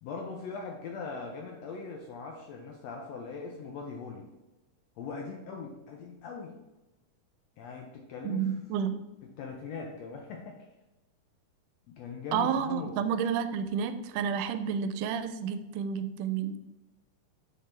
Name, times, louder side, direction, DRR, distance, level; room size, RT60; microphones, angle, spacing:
voice 1, 0.0-4.3 5.0-6.6 7.6-8.5 9.4-10.7 11.9-12.9, left 5 dB, 75° left, 1 dB, 1.6 m, -40 dB
voice 2, 8.2-9.0 12.3-16.5, right 7 dB, 85° right, 10 dB, 2.1 m, -30 dB
6.6 x 5.7 x 3.3 m, 1.0 s
omnidirectional pair, 3.6 m